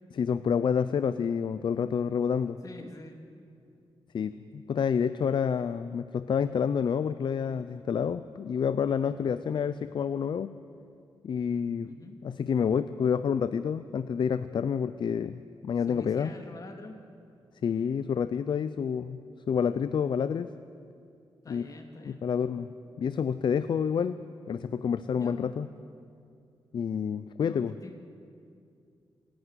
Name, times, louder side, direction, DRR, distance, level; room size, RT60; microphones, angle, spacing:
voice 1, 0.1-2.6 4.1-10.5 11.2-11.9 12.2-16.3 17.6-19.2 19.5-20.5 21.5-21.7 22.1-22.7 23.0-24.2 24.5-25.7 26.7-27.7, left 7 dB, 60° left, 13 dB, 0.5 m, -28 dB
voice 2, 2.6-3.2 11.8-12.2 15.9-17.0 21.4-22.2 25.1-25.6 27.4-28.0, left 2 dB, 40° left, 4 dB, 2.3 m, -45 dB
26.5 x 11.5 x 9.8 m, 2.4 s
wide cardioid pair, 135°, 9 cm